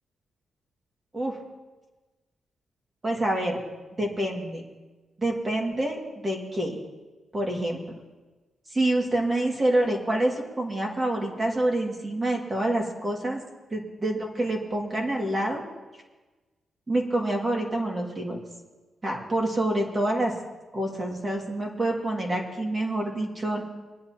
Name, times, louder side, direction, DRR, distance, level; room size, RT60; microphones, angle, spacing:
voice 1, 3.0-3.6 4.0-4.6 5.2-6.8 7.3-7.8 8.7-13.4 13.7-15.6 16.9-18.4 19.0-20.3 20.7-23.6, right 1 dB, 25° right, 0 dB, 2.2 m, -27 dB
23.5 x 10.5 x 2.9 m, 1.2 s
cardioid pair, 125°, 0 cm